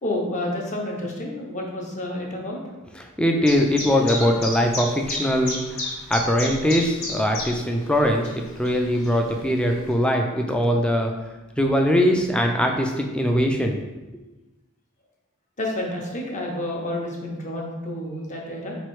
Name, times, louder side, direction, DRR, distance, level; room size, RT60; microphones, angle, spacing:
voice 1, 0.0-2.6 15.6-18.7, left 1 dB, 35° left, -1 dB, 0.7 m, -29 dB
voice 2, 3.2-5.8 6.1-11.1 11.6-13.8, equal, 5° left, 2 dB, 0.3 m, -21 dB
Chirp tweet, 3.5-9.9, left 2 dB, 75° left, 1.1 m, -33 dB
4.1 x 3.1 x 3.1 m, 1.1 s
head